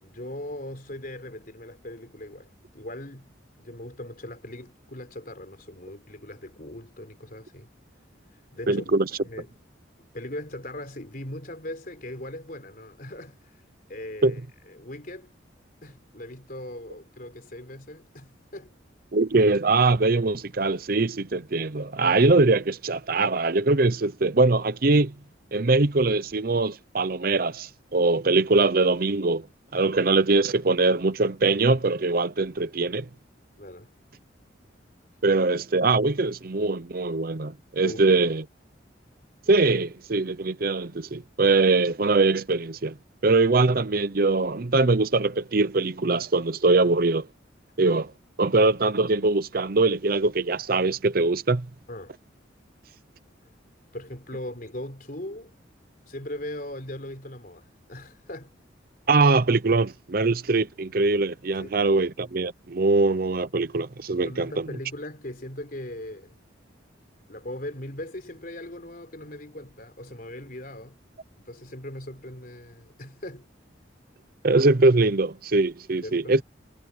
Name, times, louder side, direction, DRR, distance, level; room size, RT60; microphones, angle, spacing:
voice 1, 0.0-3.3 3.6-7.7 8.5-8.9 9.2-9.5 10.0-13.5 13.9-14.4 14.7-15.3 15.8-18.7 33.6-33.9 37.8-38.3 51.9-52.2 53.9-55.5 56.1-58.6 61.6-62.0 64.2-66.4 67.3-71.0 71.4-73.5 76.0-76.4, left 1 dB, 50° left, 4.2 m, -39 dB
voice 2, 8.7-9.1 14.2-14.3 19.1-25.1 25.5-29.5 29.7-33.1 35.2-38.4 39.5-42.9 43.2-47.3 47.8-48.1 48.4-51.7 59.1-64.7 74.4-76.4, right 3 dB, 50° right, 0.7 m, -22 dB
head